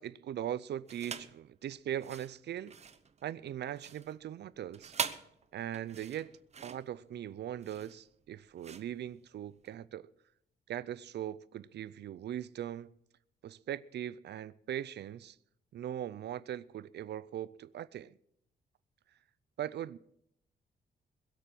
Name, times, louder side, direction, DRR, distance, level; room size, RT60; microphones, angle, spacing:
voice 1, 0.0-2.8 3.2-5.0 5.5-6.3 6.6-10.1 10.7-12.9 13.4-15.4 15.7-18.1 19.6-20.0, right 11 dB, 65° right, 0.5 m, -40 dB
sound 1, 0.9-1.4 1.9-9.8, right 6 dB, 35° right, 0.9 m, -43 dB
21.5 x 8.3 x 6.0 m
cardioid pair, 125°, 19 cm